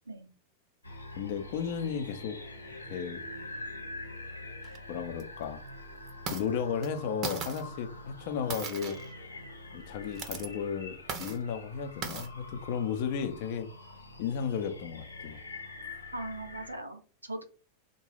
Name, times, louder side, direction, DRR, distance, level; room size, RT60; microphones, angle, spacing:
sound 1, 0.8-16.8, left 2 dB, 80° left, 0.8 m, -45 dB
voice 1, 1.2-2.4 2.9-3.2 4.9-5.6 6.3-9.0 9.7-13.7 14.2-15.4, left 7 dB, 50° left, 0.5 m, -34 dB
sound 2, 4.6-4.8 5.2-5.3 6.1-6.5 6.8-6.9 7.2-7.6 8.5-9.1 10.0-10.5 11.1-11.4 12.0-12.3, right 5 dB, 35° right, 0.6 m, -37 dB
voice 2, 16.1-17.4, right 2 dB, 80° right, 0.7 m, -39 dB
3.7 x 2.2 x 3.2 m
figure-of-eight pair, 90°, 0 cm